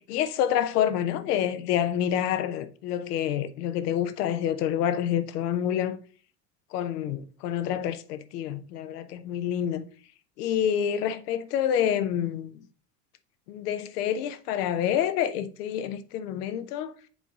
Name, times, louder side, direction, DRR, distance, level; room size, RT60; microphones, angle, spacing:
voice 1, 0.0-6.0 6.7-9.8 10.4-12.6 13.5-16.9, left 10 dB, 70° left, 0.9 m, -28 dB
7.3 x 4.0 x 3.7 m
hypercardioid pair, 85°, 48 cm